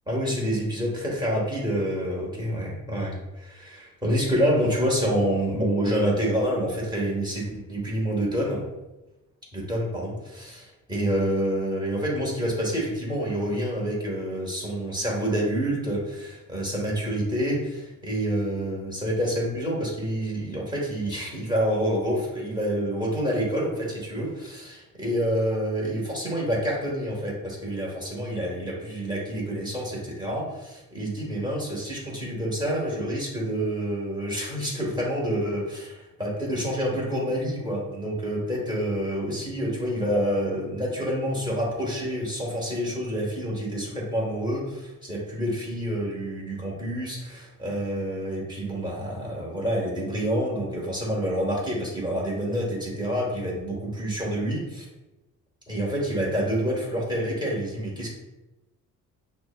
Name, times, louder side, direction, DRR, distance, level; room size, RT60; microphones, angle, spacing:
voice 1, 0.1-3.2 3.5-8.7 9.5-10.6 10.9-54.9 55.7-58.1, equal, 15° right, -3 dB, 1.4 m, -27 dB
6.1 x 2.2 x 2.2 m, 1.0 s
cardioid pair, 90°, 30 cm